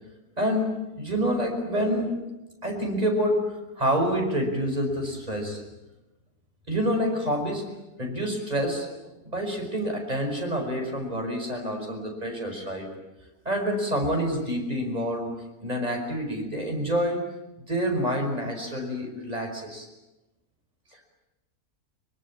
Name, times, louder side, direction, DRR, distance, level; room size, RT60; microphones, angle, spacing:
voice 1, 0.4-2.3 2.6-5.6 6.7-7.7 8.0-12.9 13.5-17.3 17.7-19.9, equal, 25° right, 3 dB, 5.7 m, -27 dB
25.0 x 24.0 x 8.7 m, 1.0 s
omnidirectional pair, 1.6 m